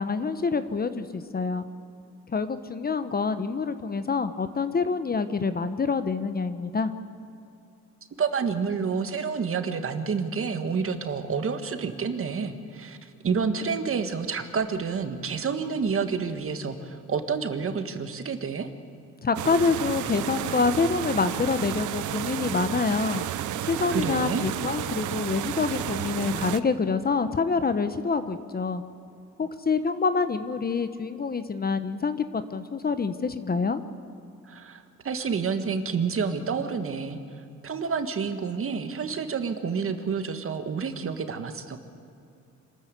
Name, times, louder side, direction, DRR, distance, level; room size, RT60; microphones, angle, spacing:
voice 1, 0.0-1.7 2.3-6.9 19.2-23.2 23.7-28.8 29.4-33.8, left 4 dB, 30° left, 11 dB, 1.1 m, -26 dB
voice 2, 8.2-18.7 23.9-24.5 34.5-37.2 37.6-41.8, right 5 dB, 45° right, 7 dB, 1.8 m, -29 dB
sound 1, 19.4-26.6, right 11 dB, 80° right, 0.8 m, -32 dB
26.0 x 13.5 x 8.2 m, 2.6 s
cardioid pair, 90°, 30 cm